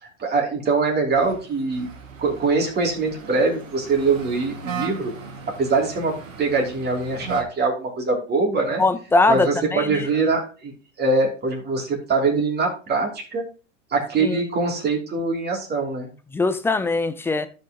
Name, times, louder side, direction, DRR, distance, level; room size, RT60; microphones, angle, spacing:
voice 1, 0.0-1.9 2.2-5.1 5.6-8.8 9.3-13.5 13.9-16.1, right 3 dB, 25° right, 2.7 m, -23 dB
sound 1, 1.1-7.4, right 5 dB, 85° right, 1.9 m, -37 dB
voice 2, 8.8-9.9 14.2-14.4 16.3-17.5, left 3 dB, 5° left, 0.3 m, -21 dB
13.0 x 5.4 x 2.8 m
hypercardioid pair, 110°, 38 cm